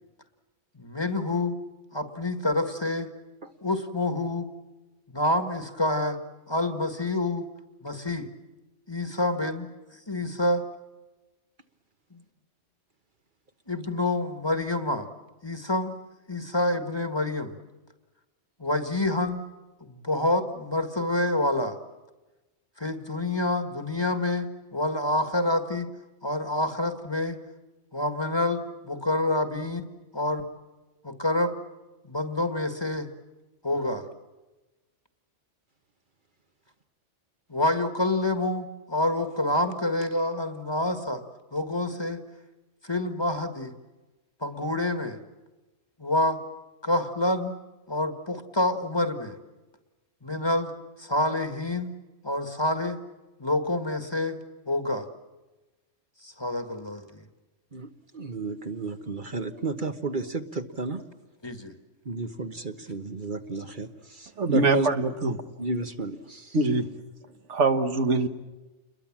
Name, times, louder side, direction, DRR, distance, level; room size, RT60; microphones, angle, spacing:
voice 1, 0.8-1.6 1.9-3.1 3.6-4.5 5.1-6.2 6.5-7.5 7.8-8.3 8.9-9.7 10.1-10.6 12.1-12.2 13.7-15.1 15.4-16.0 16.3-17.6 18.6-19.5 19.8-21.8 22.8-25.9 26.2-27.4 27.9-29.9 30.1-30.5 31.0-31.6 32.0-33.1 33.6-34.1 37.5-41.2 41.5-42.2 42.8-43.7 44.4-45.2 46.0-46.4 46.8-47.6 47.9-49.3 50.2-50.7 51.0-51.9 52.2-53.0 53.4-54.4 54.7-55.1 56.2-57.1 61.4-61.7, left 1 dB, 20° left, 7 dB, 1.7 m, -27 dB
voice 2, 58.1-61.0 62.1-63.9 64.2-64.9 65.6-66.6, right 3 dB, 45° right, 6 dB, 1.4 m, -32 dB
voice 3, 64.4-65.4 66.5-66.9 67.5-68.3, right 3 dB, 75° right, 7 dB, 1.8 m, -23 dB
28.5 x 22.0 x 7.4 m, 1.1 s
omnidirectional pair, 1.2 m